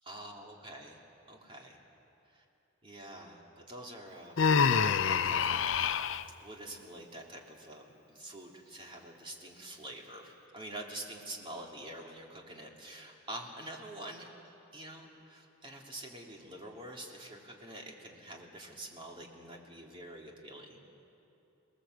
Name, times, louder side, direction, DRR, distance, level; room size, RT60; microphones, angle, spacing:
voice 1, 0.0-1.0 1.3-1.8 2.3-2.4 2.8-3.4 3.7-14.3 14.7-20.8, right 1 dB, 25° right, 0 dB, 2.8 m, -46 dB
Human voice, 4.4-6.2, left 6 dB, 75° left, 0.6 m, -27 dB
28.5 x 18.5 x 7.9 m, 2.9 s
head